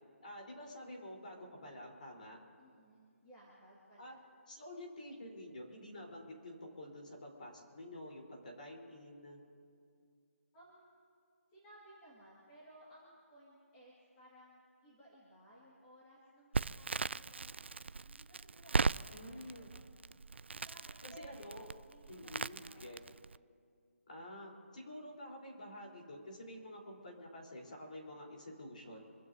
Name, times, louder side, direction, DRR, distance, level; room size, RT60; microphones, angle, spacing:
voice 1, 0.2-2.4 4.0-4.2 4.5-9.4 19.1-19.7 21.0-21.7 22.1-23.0 24.1-29.0, left 1 dB, 35° left, -1 dB, 3.9 m, -49 dB
voice 2, 2.6-4.2 10.5-10.9 11.5-17.5 18.1-20.0 20.5-23.1, equal, 10° left, -8 dB, 2.0 m, -60 dB
Crackle, 16.5-23.4, right 4 dB, 50° right, 0.3 m, -38 dB
27.5 x 15.5 x 2.7 m, 2.3 s
hypercardioid pair, 180°, 8 cm